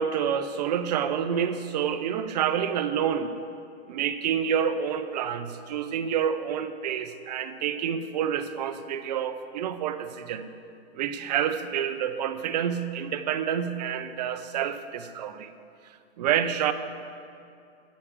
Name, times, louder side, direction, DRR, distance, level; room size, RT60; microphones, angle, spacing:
voice 1, 0.0-3.3 3.9-10.5 10.9-15.5 16.2-16.7, right 8 dB, 40° right, 10 dB, 0.5 m, -28 dB
11.5 x 4.9 x 7.3 m, 2.5 s
hypercardioid pair, 160°, 33 cm